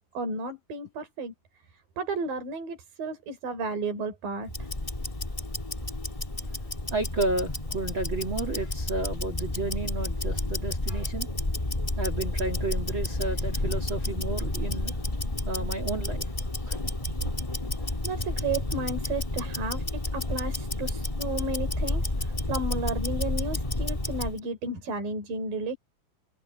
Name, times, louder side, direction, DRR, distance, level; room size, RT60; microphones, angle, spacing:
voice 1, 0.1-1.3 2.0-4.7 18.0-25.8, right 2 dB, 75° right, 5.6 m, -33 dB
Tick-tock, 4.5-24.4, left 2 dB, 25° left, 0.7 m, -31 dB
voice 2, 6.9-11.3 12.0-15.0 15.5-16.8, right 2 dB, 35° right, 3.0 m, -32 dB
open air
omnidirectional pair, 4.0 m